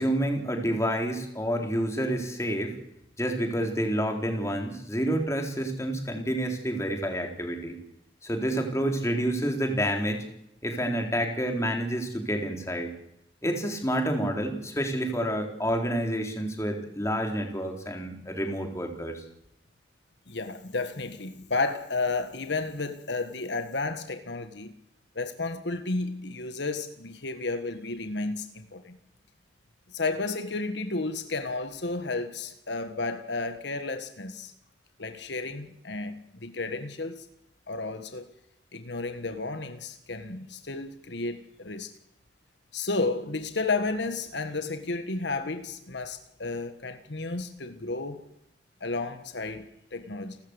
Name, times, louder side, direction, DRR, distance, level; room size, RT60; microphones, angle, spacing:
voice 1, 0.0-2.7 3.2-7.8 8.2-10.2 10.6-12.9 13.4-19.2, equal, 15° left, 3.9 m, -29 dB
voice 2, 20.3-24.7 25.1-29.0 29.9-34.5 35.0-37.3 37.7-38.3 38.7-41.9 42.7-48.2 48.8-50.4, left 3 dB, 75° left, 1.6 m, -32 dB
29.5 x 13.5 x 8.2 m
head